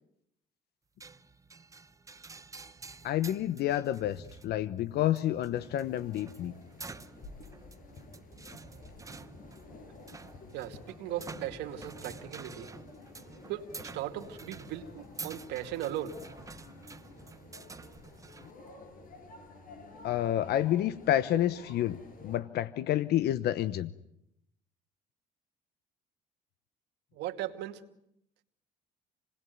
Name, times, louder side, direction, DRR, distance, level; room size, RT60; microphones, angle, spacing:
sound 1, 1.0-18.5, right 4 dB, 20° right, 1.1 m, -49 dB
voice 1, 3.0-6.5 20.0-23.9, left 12 dB, 75° left, 14 dB, 1.1 m, -29 dB
sound 2, 5.5-22.4, left 3 dB, 55° left, 7.2 m, -51 dB
voice 2, 10.5-12.7 13.5-16.2 27.1-27.8, right 12 dB, 85° right, 5 dB, 2.5 m, -38 dB
28.5 x 20.5 x 9.5 m, 0.78 s
cardioid pair, 110°, 17 cm